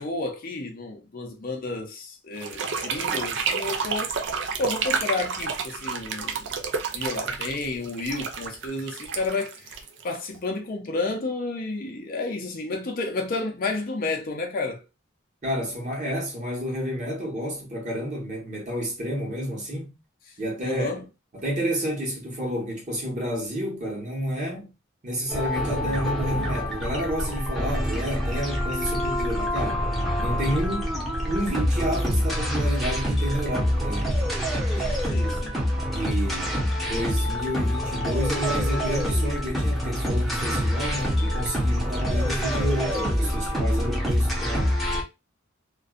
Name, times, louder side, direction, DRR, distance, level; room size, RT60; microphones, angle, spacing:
voice 1, 0.0-4.2 4.6-6.5 6.9-14.8 20.6-21.0 35.1-35.5, left 3 dB, 45° left, 0.5 m, -31 dB
sound 1, 2.4-10.4, right 5 dB, 60° right, 0.5 m, -30 dB
voice 2, 15.4-19.9 20.4-20.9 21.3-24.7 25.0-29.8 30.2-34.2 34.7-35.0 35.9-36.5 36.8-44.7, equal, 40° right, 1.1 m, -30 dB
sound 2, 25.3-45.0, equal, ahead, 0.7 m, -26 dB
2.5 x 2.2 x 2.3 m
head